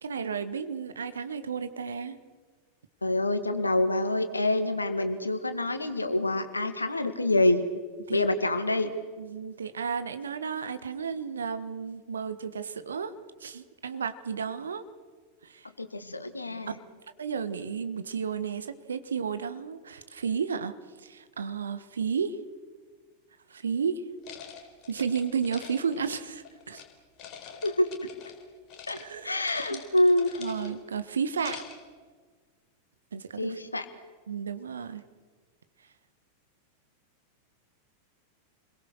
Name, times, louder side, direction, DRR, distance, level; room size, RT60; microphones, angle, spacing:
voice 1, 0.0-2.2 8.1-8.3 9.2-13.1 13.4-14.8 15.4-15.7 17.2-20.7 21.0-22.4 23.5-24.0 24.9-26.8 29.0-29.3 29.7-29.8 30.4-31.6 33.1-33.6 34.3-35.0, right 6 dB, 70° right, 11 dB, 1.5 m, -32 dB
voice 2, 3.0-7.7 8.1-8.9 15.8-16.8 27.6-28.1 28.9-29.0 29.2-30.4 33.4-33.9, left 1 dB, 80° left, 9 dB, 2.0 m, -26 dB
sound 1, 24.2-26.9 27.2-28.4 28.7-29.0 29.3-30.8 31.2-31.9, left 8 dB, 40° left, 4.1 m, -45 dB
29.0 x 22.0 x 6.6 m, 1.5 s
figure-of-eight pair, 90°, 0 cm